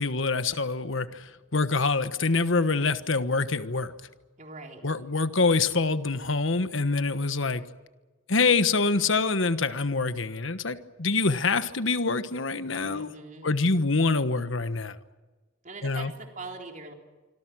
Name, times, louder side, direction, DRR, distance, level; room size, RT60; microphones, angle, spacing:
voice 1, 0.0-3.9 4.8-7.6 8.3-13.1 13.4-15.0 15.8-16.1, left 3 dB, 75° left, 11 dB, 1.3 m, -25 dB
voice 2, 4.4-4.8 12.8-13.5 15.6-16.9, right 3 dB, 40° right, 2 dB, 3.9 m, -42 dB
26.5 x 25.5 x 6.3 m, 1.2 s
head